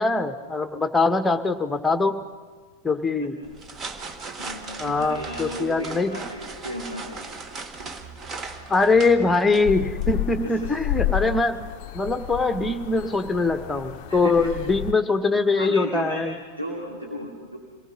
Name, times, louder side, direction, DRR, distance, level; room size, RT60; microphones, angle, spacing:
voice 1, 0.0-2.2 2.8-3.4 4.8-6.2 8.7-11.7 11.9-16.3, left 3 dB, 10° left, 8 dB, 1.3 m, -22 dB
sound 1, 3.4-10.3, right 4 dB, 25° right, 1.5 m, -38 dB
voice 2, 4.4-7.2 7.8-7.9 10.4-10.7 14.1-14.4 15.6-16.2 16.6-17.6, right 1 dB, 90° right, -2 dB, 2.7 m, -34 dB
sound 2, 9.6-14.9, left 14 dB, 45° left, 0.7 m, -31 dB
26.5 x 19.0 x 5.4 m, 1.4 s
figure-of-eight pair, 90°, 0 cm